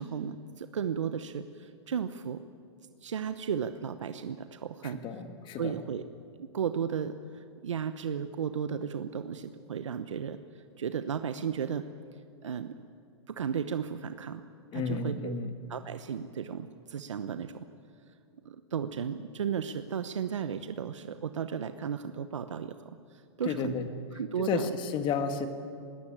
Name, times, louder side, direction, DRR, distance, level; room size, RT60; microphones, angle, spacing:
voice 1, 0.0-2.4 3.0-5.0 5.6-6.0 6.4-10.4 10.8-11.9 12.4-12.9 13.3-14.4 14.7-15.4 15.7-17.7 18.4-23.8 24.1-24.7, right 7 dB, 90° right, 10 dB, 0.9 m, -34 dB
voice 2, 4.8-5.7 14.7-15.5 23.4-23.9 24.4-25.5, left 5 dB, 30° left, 8 dB, 1.8 m, -32 dB
21.5 x 18.5 x 8.8 m, 2.4 s
hypercardioid pair, 125°, 15 cm